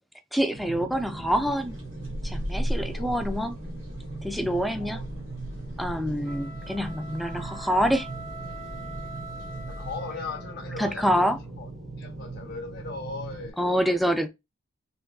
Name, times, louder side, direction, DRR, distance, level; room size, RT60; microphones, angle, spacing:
voice 1, 0.3-1.8 2.2-3.5 4.2-5.0 5.8-8.1 10.8-11.4 13.6-14.3, equal, ahead, 0.3 m, -26 dB
sound 1, 0.5-13.5, right 3 dB, 50° right, 0.8 m, -40 dB
sound 2, 0.9-10.0, equal, 75° right, 1.8 m, -37 dB
voice 2, 2.9-3.2 4.7-5.0 9.7-11.3 11.6-11.7 12.0-13.6, left 4 dB, 55° left, 0.6 m, -38 dB
sound 3, 6.2-10.7, right 2 dB, 80° left, 0.8 m, -43 dB
3.5 x 2.9 x 2.3 m
head